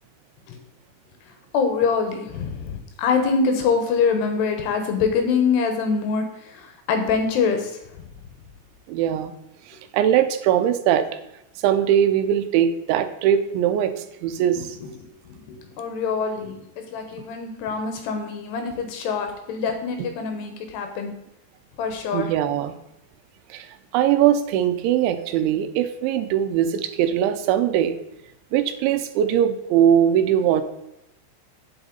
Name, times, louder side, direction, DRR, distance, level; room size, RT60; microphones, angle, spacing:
voice 1, 1.3-8.1 14.4-14.5 14.8-15.0 15.3-21.1 21.8-22.3, left 5 dB, 70° left, 5 dB, 3.0 m, -25 dB
voice 2, 8.9-9.3 9.7-11.1 11.6-14.7 22.1-22.7 23.5-23.7 23.9-28.0 28.5-30.6, right 10 dB, 85° right, 10 dB, 3.1 m, -21 dB
8.8 x 8.0 x 3.9 m, 0.85 s
omnidirectional pair, 5.3 m